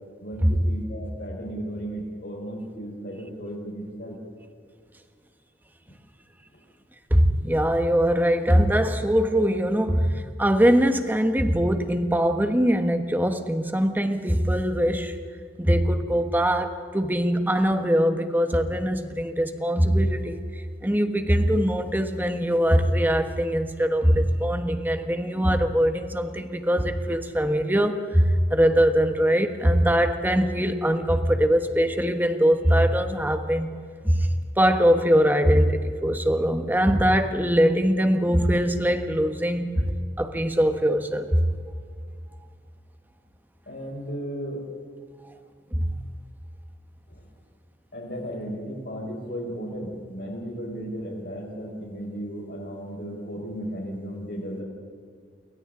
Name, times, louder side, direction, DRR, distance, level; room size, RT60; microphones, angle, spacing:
voice 1, 0.2-4.2 43.7-44.6 47.1-47.3 47.9-54.6, equal, 65° left, 0 dB, 5.1 m, -35 dB
voice 2, 7.1-15.2 15.6-20.4 20.8-33.7 34.0-34.3 34.6-39.9 40.2-41.4 45.7-46.0, equal, 10° right, 7 dB, 1.3 m, -22 dB
29.0 x 23.5 x 3.9 m, 2.2 s
head